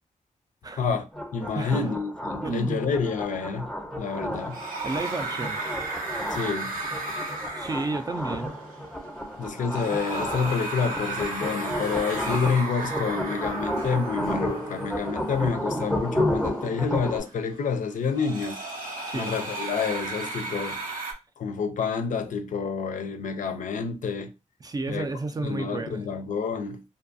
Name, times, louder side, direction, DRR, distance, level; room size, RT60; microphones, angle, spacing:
voice 1, 0.7-3.7 4.0-4.6 6.3-6.7 9.4-18.6 19.1-20.8 21.4-24.3 24.9-25.1 25.4-26.8, left 5 dB, 70° left, 0.4 m, -28 dB
sound 1, 1.1-17.2, equal, 5° left, 0.6 m, -32 dB
voice 2, 1.6-1.9 2.4-2.8 4.8-5.7 7.6-8.5 19.1-19.3 24.6-26.0, right 3 dB, 30° right, 0.4 m, -31 dB
sound 2, 4.3-21.1, right 2 dB, 90° right, 0.7 m, -35 dB
2.6 x 2.3 x 2.5 m
cardioid pair, 75°, 13 cm